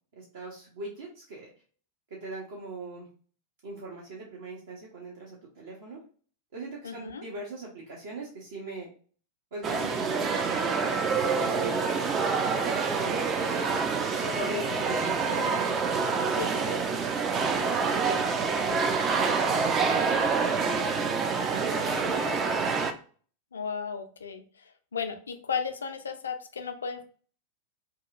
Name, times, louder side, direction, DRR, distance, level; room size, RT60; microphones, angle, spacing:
voice 1, 0.2-1.5 2.1-3.1 3.6-6.0 6.5-8.9 9.5-11.1 11.4-12.0 12.3-13.4 14.1-15.7 16.0-18.2 18.5-20.9 21.4-22.8, right 2 dB, 60° right, -4 dB, 0.7 m, -41 dB
voice 2, 6.8-7.2 16.4-16.5 23.5-24.4 24.9-27.0, left 6 dB, 70° left, 7 dB, 0.3 m, -34 dB
sound 1, 9.6-22.9, right 5 dB, 25° right, 0.3 m, -27 dB
sound 2, 10.3-17.8, right 1 dB, 80° right, 1.0 m, -43 dB
2.8 x 2.3 x 2.3 m, 0.42 s
figure-of-eight pair, 90°, 0 cm